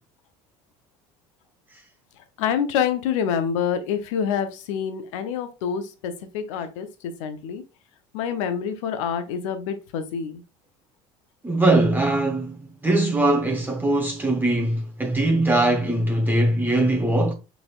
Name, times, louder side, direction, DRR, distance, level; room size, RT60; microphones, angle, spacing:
voice 1, 2.4-7.6 8.1-10.4, left 8 dB, 85° left, 0.6 m, -27 dB
voice 2, 11.4-12.6 12.8-17.3, right 2 dB, 10° right, 0.7 m, -21 dB
4.2 x 3.4 x 2.4 m
supercardioid pair, 90°, 16 cm